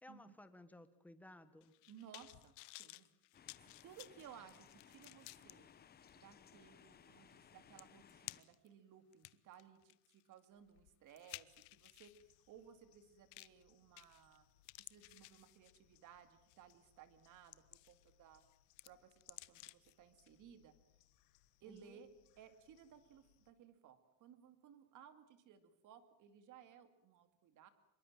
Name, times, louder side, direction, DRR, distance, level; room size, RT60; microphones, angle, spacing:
voice 1, 0.0-1.7 21.7-22.0, left 1 dB, 5° left, 11 dB, 1.3 m, -58 dB
sound 1, 1.6-5.5 6.1-6.2 7.4-7.5 7.8-8.7 9.1-12.2 13.3-13.6 14.0-14.4 14.6-16.0 16.5-16.7 17.2-18.1 18.4-19.9 20.3-20.4, left 25 dB, 60° left, 0.8 m, -56 dB
voice 2, 1.9-3.1 3.6-5.7 6.2-14.5 14.8-18.4 18.8-20.7 21.6-22.1 22.4-27.7, right 8 dB, 45° right, 10 dB, 2.5 m, -60 dB
sound 2, 3.3-8.4, left 8 dB, 20° left, 1.0 m, -63 dB
sound 3, 11.5-23.5, left 13 dB, 90° left, 2.0 m, -75 dB
25.5 x 22.0 x 7.5 m, 0.79 s
cardioid pair, 160°, 44 cm